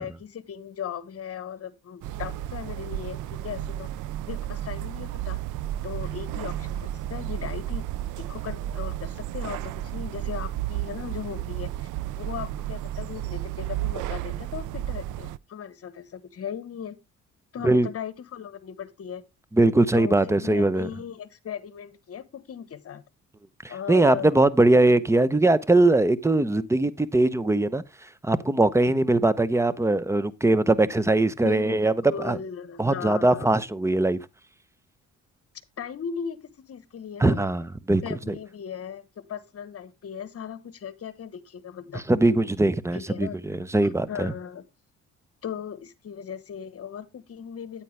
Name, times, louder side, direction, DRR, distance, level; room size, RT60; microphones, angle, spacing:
voice 1, 0.0-3.9 4.3-5.4 5.8-11.9 12.1-17.0 17.5-19.2 19.9-23.0 23.7-24.4 30.7-30.9 31.3-33.5 35.8-37.5 38.0-42.0 42.9-43.4 43.8-44.6 45.4-47.8, left 8 dB, 50° left, 1.3 m, -37 dB
sound 1, 2.0-15.4, right 13 dB, 80° right, 0.5 m, -32 dB
voice 2, 19.5-20.9 23.9-27.8 28.2-31.9 32.2-32.4 32.8-34.2 37.2-38.3 41.9-44.3, right 2 dB, 10° right, 0.8 m, -21 dB
9.2 x 9.0 x 3.3 m
cardioid pair, 90°, 30 cm